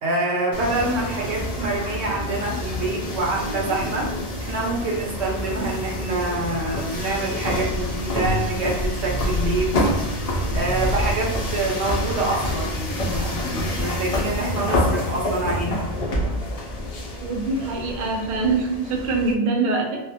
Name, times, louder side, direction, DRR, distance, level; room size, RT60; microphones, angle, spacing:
voice 1, 0.0-4.1 4.4-9.7 10.5-15.9, right 2 dB, 90° right, -1 dB, 1.0 m, -26 dB
sound 1, 0.5-19.3, left 1 dB, 50° left, 0.5 m, -27 dB
voice 2, 17.2-20.0, right 3 dB, 60° right, 1 dB, 0.7 m, -24 dB
2.3 x 2.1 x 2.7 m, 0.93 s
omnidirectional pair, 1.1 m